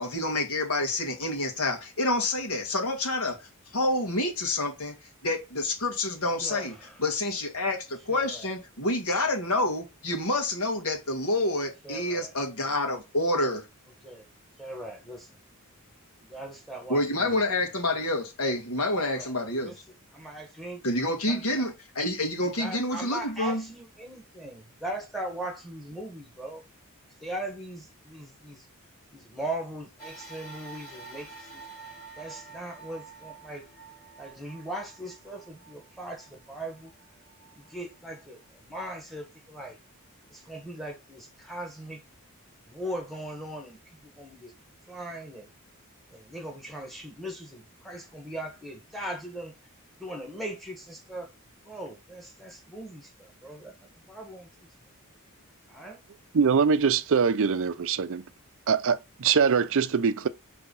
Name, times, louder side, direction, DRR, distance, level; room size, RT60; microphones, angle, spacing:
voice 1, 0.0-3.4 3.7-4.9 5.2-6.7 7.0-13.6 16.9-19.7 20.8-23.6, left 2 dB, 75° left, 1.8 m, -28 dB
voice 2, 6.4-7.0 8.1-8.5 11.8-12.3 14.0-14.3 14.6-15.3 16.2-17.6 19.0-19.3 19.6-19.8 20.1-20.8 21.2-21.6 22.4-26.6 27.2-28.7 29.1-31.6 32.2-33.6 34.2-36.9 37.5-39.8 40.3-42.0 42.6-44.5 44.9-45.5 46.1-49.5 50.0-51.3 51.6-54.7 55.7-56.0, right 1 dB, ahead, 1.6 m, -39 dB
sound 1, 30.0-38.6 39.2-39.3 40.4-40.5, right 4 dB, 40° left, 4.3 m, -49 dB
voice 3, 56.3-58.2 58.7-60.3, right 6 dB, 65° right, 0.5 m, -23 dB
5.8 x 3.4 x 5.4 m
head